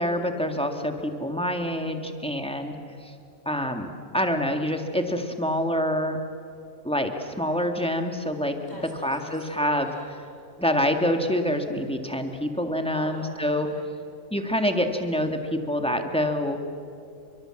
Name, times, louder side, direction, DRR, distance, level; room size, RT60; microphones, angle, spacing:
voice 1, 0.0-2.7 3.0-3.1 3.5-6.2 6.8-8.6 9.0-9.9 10.6-13.7 14.3-16.6, equal, 5° left, 4 dB, 1.9 m, -26 dB
voice 2, 8.6-10.4 12.9-13.9, left 1 dB, 30° left, -1 dB, 6.3 m, -45 dB
29.5 x 24.0 x 7.8 m, 2.5 s
omnidirectional pair, 1.4 m